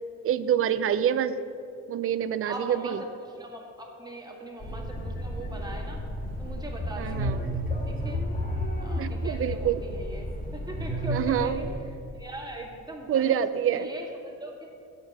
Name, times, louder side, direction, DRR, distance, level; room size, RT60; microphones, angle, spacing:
voice 1, 0.2-1.3 1.9-3.0 7.0-7.4 9.0-9.8 11.1-11.7 13.1-13.9, right 9 dB, 50° right, 14 dB, 0.5 m, -26 dB
voice 2, 2.5-3.0 3.2-6.0 6.4-7.4 7.8-8.3 8.8-11.6 12.1-13.4 13.7-14.7, right 1 dB, 15° right, 0 dB, 1.6 m, -40 dB
sound 1, 4.6-11.8, equal, 30° left, 1.5 m, -32 dB
8.1 x 5.4 x 6.4 m, 2.6 s
cardioid pair, 90°, 30 cm